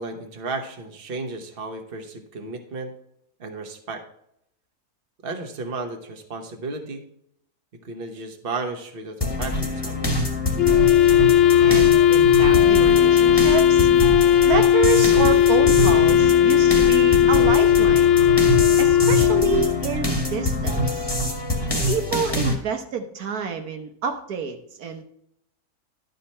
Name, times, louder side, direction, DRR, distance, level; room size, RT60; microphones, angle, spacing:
voice 1, 0.0-2.9 3.4-4.0 5.2-7.0 7.8-10.2, right 3 dB, 40° right, 4 dB, 1.3 m, -33 dB
sound 1, 9.2-22.5, left 1 dB, 15° left, 1.5 m, -25 dB
Wind instrument woodwind instrument, 10.6-19.8, left 10 dB, 85° left, 0.5 m, -16 dB
voice 2, 11.6-13.9 14.4-18.1 18.8-21.1 21.9-25.0, right 6 dB, 75° right, 5 dB, 1.4 m, -28 dB
11.5 x 5.3 x 4.4 m, 0.72 s
omnidirectional pair, 1.6 m